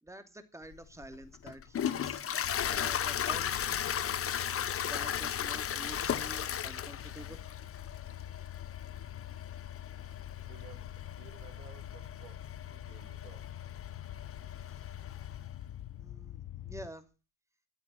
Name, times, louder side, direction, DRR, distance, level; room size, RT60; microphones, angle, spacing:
voice 1, 0.0-3.6 4.8-7.4 14.6-14.9 16.0-17.1, right 1 dB, 5° right, 2.7 m, -48 dB
Toilet flush, 0.7-15.5, left 9 dB, 30° left, 0.9 m, -37 dB
sound 1, 2.4-16.9, left 12 dB, 45° left, 1.2 m, -45 dB
voice 2, 10.4-12.4 12.7-13.5, right 10 dB, 90° right, 3.1 m, -56 dB
13.5 x 8.5 x 7.6 m
supercardioid pair, 85°, 44 cm